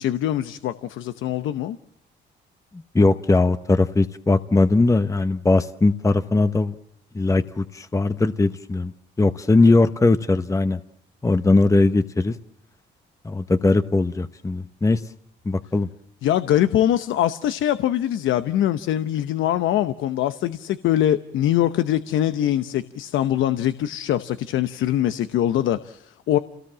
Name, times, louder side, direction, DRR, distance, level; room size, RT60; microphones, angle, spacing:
voice 1, 0.0-1.8 16.2-26.4, left 12 dB, 85° left, 0.9 m, -23 dB
voice 2, 2.9-6.7 7.1-8.9 9.2-10.8 11.2-12.3 13.2-15.0 15.5-15.9, left 2 dB, 15° left, 0.9 m, -19 dB
28.5 x 18.5 x 7.4 m
cardioid pair, 90°, 20 cm